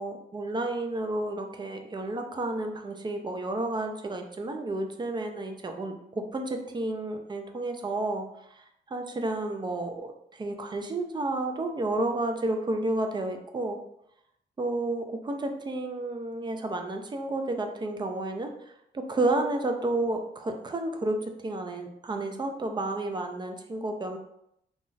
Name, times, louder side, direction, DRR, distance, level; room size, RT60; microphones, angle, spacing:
voice 1, 0.0-8.2 8.5-13.8 14.6-18.5 18.9-21.2 21.4-24.2, right 2 dB, 25° right, 5 dB, 0.4 m, -31 dB
2.3 x 2.0 x 3.9 m, 0.79 s
cardioid pair, 90°, 18 cm